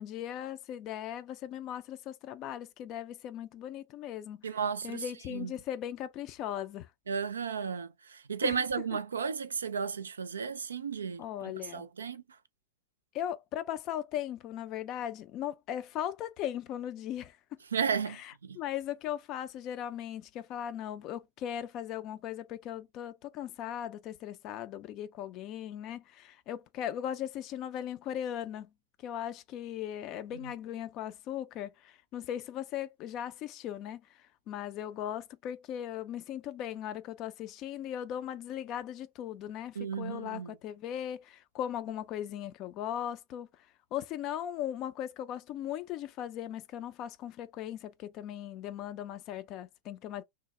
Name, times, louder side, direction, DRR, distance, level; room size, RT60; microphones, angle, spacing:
voice 1, 0.0-4.6 4.8-6.9 8.4-8.5 11.2-11.9 13.1-17.6 18.1-28.7 29.0-43.5 43.9-50.2, left 10 dB, 35° left, 0.4 m, -38 dB
voice 2, 4.4-5.5 7.1-12.2 17.7-18.6 39.8-40.5, right 6 dB, 70° right, 0.4 m, -34 dB
2.9 x 2.0 x 3.2 m
figure-of-eight pair, 90°, 0 cm